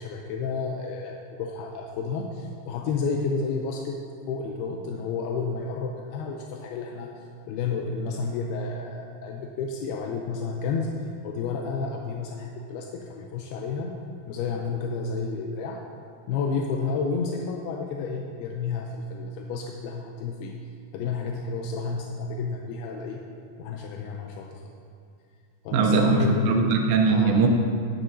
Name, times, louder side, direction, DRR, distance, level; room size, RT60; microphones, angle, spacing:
voice 1, 0.0-4.0 4.3-7.1 7.5-10.9 11.2-13.9 14.3-15.8 16.3-20.6 20.9-23.2 23.6-24.6 25.6-26.7 27.1-27.4, left 4 dB, 85° left, 1 dB, 2.3 m, -31 dB
voice 2, 25.7-27.5, right 4 dB, 80° right, 2 dB, 3.0 m, -21 dB
12.5 x 10.0 x 2.7 m, 2.3 s
omnidirectional pair, 5.0 m